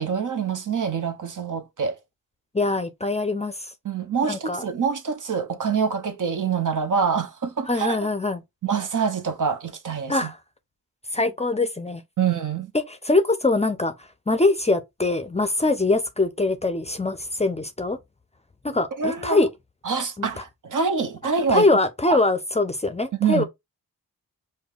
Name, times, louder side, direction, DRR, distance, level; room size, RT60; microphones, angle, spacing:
voice 1, 0.0-2.0 3.8-8.0 8.6-10.2 12.2-12.7 19.0-19.5 19.8-21.7 22.1-22.2 23.2-23.4, right 6 dB, 55° right, 0.7 m, -25 dB
voice 2, 2.5-3.7 4.2-4.6 7.7-8.4 10.1-10.4 11.1-12.0 12.9-18.0 18.6-19.5 20.2-20.3 21.5-23.4, left 2 dB, 20° left, 0.5 m, -23 dB
5.3 x 2.2 x 2.4 m
cardioid pair, 45°, 36 cm